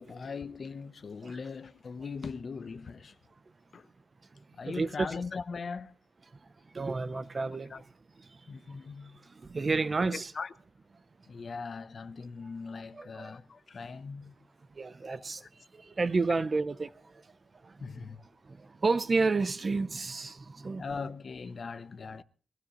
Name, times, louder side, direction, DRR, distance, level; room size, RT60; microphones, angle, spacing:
voice 1, 0.0-3.1 3.7-3.9 4.5-5.9 7.1-7.2 7.7-7.8 8.5-9.3 10.1-10.5 11.3-14.3 15.4-15.5 17.8-18.2 20.8-22.2, left 5 dB, 50° left, 0.8 m, -40 dB
voice 2, 4.3-5.1 6.3-7.8 8.2-10.3 12.9-13.4 14.7-17.8 18.4-20.9, right 3 dB, 40° right, 0.7 m, -32 dB
22.0 x 15.5 x 3.1 m
cardioid pair, 90°, 0 cm